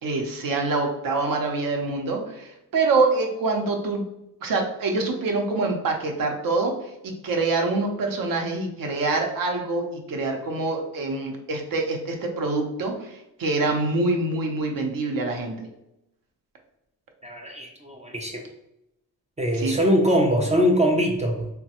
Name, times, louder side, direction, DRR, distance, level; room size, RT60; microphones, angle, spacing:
voice 1, 0.0-4.0 4.4-6.7 7.0-15.7 19.5-19.8, right 3 dB, 60° right, 2 dB, 0.6 m, -25 dB
voice 2, 17.2-18.4 19.4-21.5, equal, 20° right, 1 dB, 0.3 m, -22 dB
3.1 x 2.2 x 2.8 m, 0.86 s
cardioid pair, 95°, 38 cm